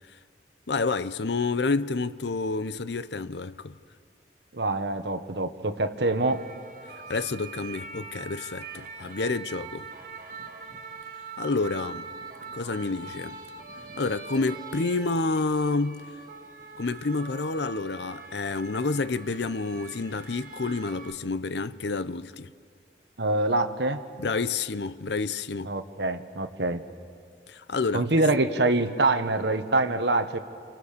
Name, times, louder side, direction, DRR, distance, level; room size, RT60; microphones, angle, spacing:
voice 1, 0.7-3.7 7.1-9.9 11.4-12.1 12.5-13.4 14.0-16.0 16.8-22.5 24.2-25.7 27.5-28.0, left 3 dB, 75° left, 0.7 m, -29 dB
voice 2, 4.5-6.4 23.2-24.0 25.6-26.8 27.9-30.4, right 2 dB, 80° right, 1.4 m, -25 dB
sound 1, 6.0-21.1, right 4 dB, 50° right, 2.1 m, -43 dB
29.5 x 28.5 x 6.8 m
head